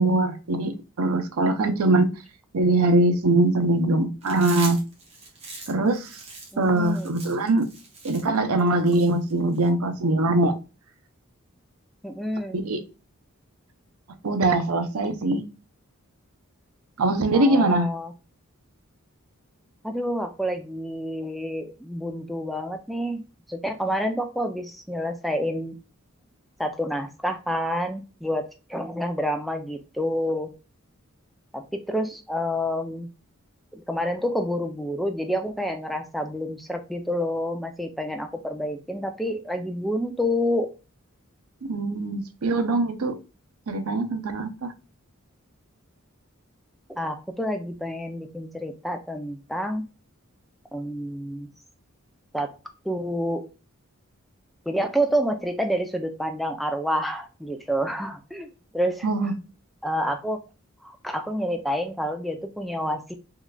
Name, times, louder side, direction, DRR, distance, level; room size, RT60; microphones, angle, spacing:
voice 1, 0.0-2.1 2.5-4.8 5.7-6.2 6.6-7.7 8.0-10.5 12.6-12.8 14.2-15.4 17.0-17.9 41.6-43.2 43.7-44.7 59.0-59.3, right 2 dB, 90° right, 8 dB, 0.6 m, -22 dB
Chewing mastication, 4.2-9.7, right 3 dB, 30° right, 1.0 m, -41 dB
voice 2, 6.5-7.1 12.0-12.6 17.3-18.1 19.8-23.2 23.5-25.7 26.6-30.5 31.5-33.1 33.7-40.7 46.9-49.9 50.7-51.5 52.3-52.5 52.8-53.5 54.7-59.1 59.8-60.4 60.8-63.1, equal, ahead, 5 dB, 0.3 m, -28 dB
3.7 x 3.2 x 2.2 m, 0.31 s
head